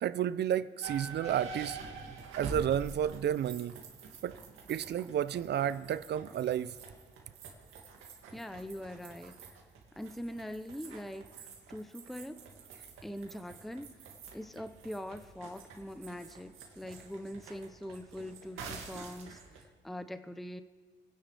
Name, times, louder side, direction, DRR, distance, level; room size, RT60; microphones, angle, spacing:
voice 1, 0.0-1.8 2.4-3.7 4.2-4.4 4.7-6.8, right 10 dB, 60° right, 0.6 m, -31 dB
sound 1, 0.8-19.6, right 5 dB, 85° right, 2.3 m, -47 dB
voice 2, 8.3-9.6 9.9-12.4 13.0-14.0 14.3-20.6, left 1 dB, ahead, 0.6 m, -43 dB
28.0 x 10.5 x 3.4 m
cardioid pair, 90°, 20 cm